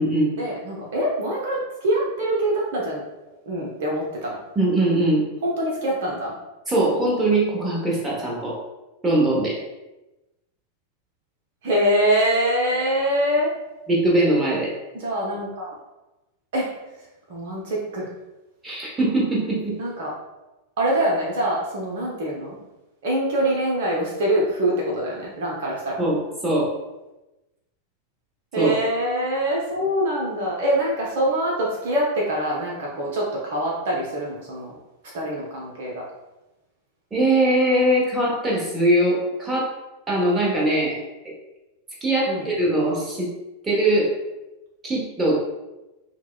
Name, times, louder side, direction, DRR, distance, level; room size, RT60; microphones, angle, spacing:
voice 1, 0.4-3.0 3.5-4.4 5.4-6.4 11.6-13.5 14.9-15.7 16.5-16.7 17.3-18.1 19.8-20.1 20.8-22.6 23.0-26.0 28.5-34.8 35.1-36.0 42.3-42.5, right 1 dB, 55° right, -3 dB, 0.7 m, -24 dB
voice 2, 4.5-5.3 6.7-8.6 9.0-9.6 13.9-14.7 18.6-19.8 26.0-26.7 28.6-28.7 37.1-39.7 40.1-41.0 42.0-43.3 43.6-44.1 44.8-45.3, right 1 dB, 15° right, -4 dB, 1.0 m, -21 dB
5.6 x 2.1 x 2.3 m, 1.0 s
figure-of-eight pair, 90°, 0 cm